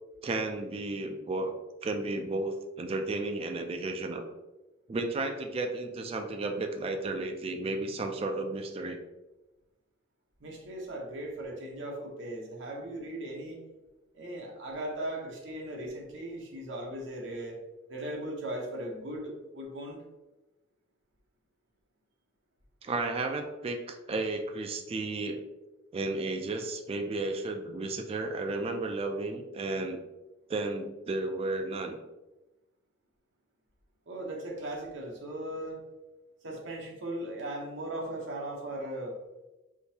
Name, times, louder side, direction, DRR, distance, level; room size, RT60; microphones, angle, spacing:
voice 1, 0.2-1.5 1.8-4.3 4.9-9.0 22.8-25.4 25.9-30.0 30.5-32.0, right 2 dB, 30° right, 5 dB, 0.3 m, -33 dB
voice 2, 10.4-13.6 14.1-17.6 17.9-20.0 34.1-35.8 36.4-39.2, right 1 dB, 65° right, 0 dB, 0.8 m, -38 dB
3.7 x 2.7 x 2.7 m, 1.0 s
head